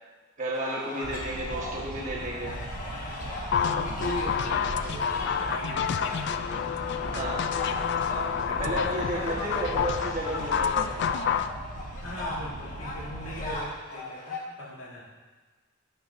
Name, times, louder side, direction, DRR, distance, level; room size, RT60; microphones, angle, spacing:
voice 1, 0.4-2.6 7.1-7.5 8.6-11.4, right 1 dB, 40° right, -3 dB, 1.3 m, -33 dB
sound 1, 0.5-14.4, left 1 dB, 40° left, 1.1 m, -39 dB
voice 2, 0.9-1.3 3.5-6.6 8.5-9.9 12.0-15.0, left 1 dB, 75° left, -5 dB, 1.9 m, -40 dB
sound 2, 1.0-13.6, right 1 dB, 85° right, 0.8 m, -39 dB
sound 3, 3.5-11.5, left 7 dB, 60° left, 0.3 m, -29 dB
9.5 x 6.6 x 2.6 m, 1.3 s
head